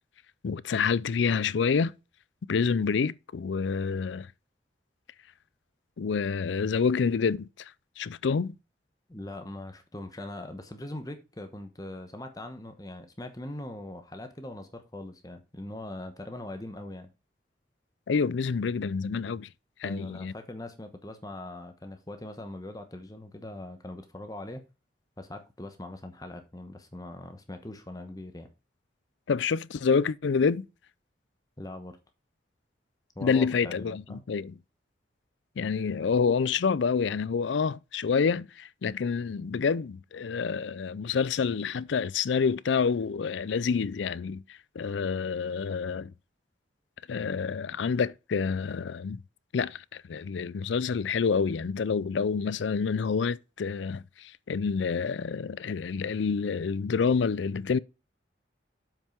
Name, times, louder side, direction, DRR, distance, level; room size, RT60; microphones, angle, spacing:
voice 1, 0.4-1.9 2.5-4.3 6.0-7.5 8.0-8.6 18.1-19.5 19.8-20.3 29.3-30.7 33.2-34.5 35.6-44.4 44.8-46.1 47.1-49.2 49.5-57.8, left 5 dB, 80° left, 0.4 m, -28 dB
voice 2, 9.1-17.1 19.8-24.6 25.2-28.5 31.6-32.0 33.2-34.2, left 1 dB, 20° left, 1.0 m, -41 dB
7.4 x 5.5 x 4.5 m
head